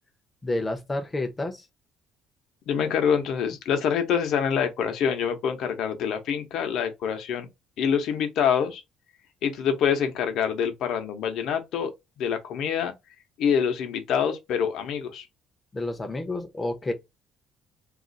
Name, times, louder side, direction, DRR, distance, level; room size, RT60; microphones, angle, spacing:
voice 1, 0.4-1.6 15.7-16.9, left 2 dB, 15° left, 0.6 m, -29 dB
voice 2, 2.7-7.5 7.8-8.8 9.4-11.9 12.2-12.9 13.4-15.3, left 7 dB, 60° left, 0.7 m, -26 dB
2.4 x 2.4 x 3.8 m
cardioid pair, 170°, 0 cm